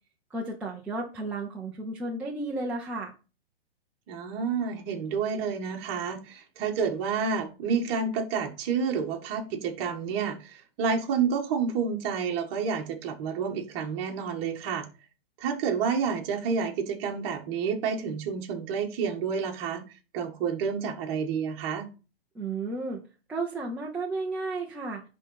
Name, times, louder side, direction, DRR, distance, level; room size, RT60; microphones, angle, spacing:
voice 1, 0.3-3.1 22.3-23.0 23.3-25.0, right 2 dB, 5° right, -4 dB, 0.7 m, -33 dB
voice 2, 4.1-14.9 15.4-19.8 20.1-21.9, right 6 dB, 30° right, 3 dB, 1.7 m, -29 dB
10.0 x 4.0 x 5.6 m, 0.32 s
hypercardioid pair, 165°, 31 cm